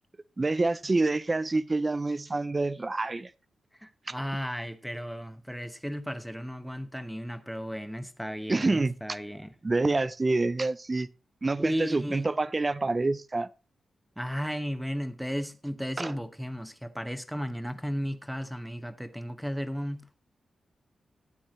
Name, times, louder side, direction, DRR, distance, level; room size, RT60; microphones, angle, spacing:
voice 1, 0.4-3.3 4.1-4.2 8.5-9.2 9.6-11.1 11.4-13.5 16.0-16.1, right 3 dB, 20° right, 0.4 m, -27 dB
voice 2, 3.8-9.5 11.6-12.3 14.2-20.2, equal, ahead, 0.9 m, -34 dB
13.0 x 9.9 x 3.1 m
wide cardioid pair, 155°, 0 cm